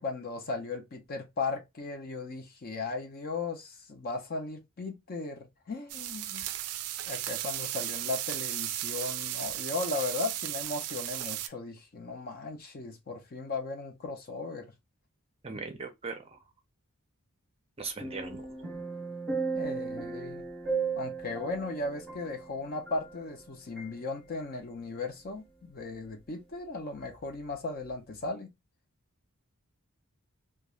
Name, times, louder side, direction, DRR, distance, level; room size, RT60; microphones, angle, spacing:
voice 1, 0.0-6.5 7.1-14.7 19.5-20.5 21.0-28.5, left 3 dB, 45° left, 0.5 m, -37 dB
sound 1, 5.9-11.5, right 14 dB, 85° right, 0.3 m, -35 dB
voice 2, 15.4-16.4 17.8-18.6, right 4 dB, 25° right, 0.5 m, -39 dB
sound 2, 18.0-23.4 23.8-23.9, right 4 dB, 5° left, 0.9 m, -36 dB
3.0 x 2.2 x 2.3 m
head